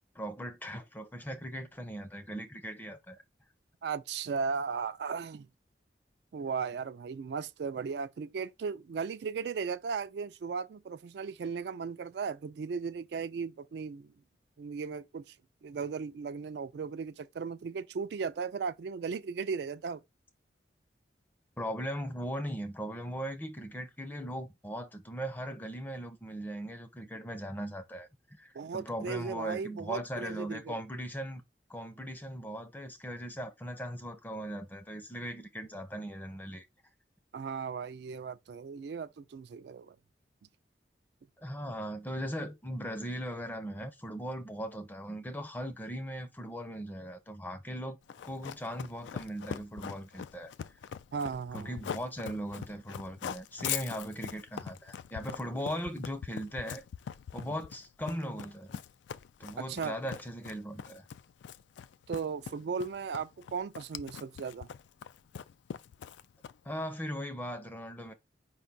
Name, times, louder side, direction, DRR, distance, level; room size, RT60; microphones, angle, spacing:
voice 1, 0.1-3.2 21.6-28.1 28.4-31.4 31.7-36.7 41.4-48.0 48.2-50.5 51.5-56.8 57.3-58.8 59.4-61.1 66.6-68.1, equal, 10° left, 0.5 m, -39 dB
voice 2, 3.8-5.5 6.3-14.1 14.6-15.3 15.6-20.0 28.6-30.7 37.3-40.0 51.1-51.8 59.6-60.0 62.1-64.7, right 5 dB, 70° right, 0.3 m, -36 dB
Run, 48.1-66.8, left 8 dB, 80° left, 0.3 m, -42 dB
5.1 x 2.3 x 4.0 m
head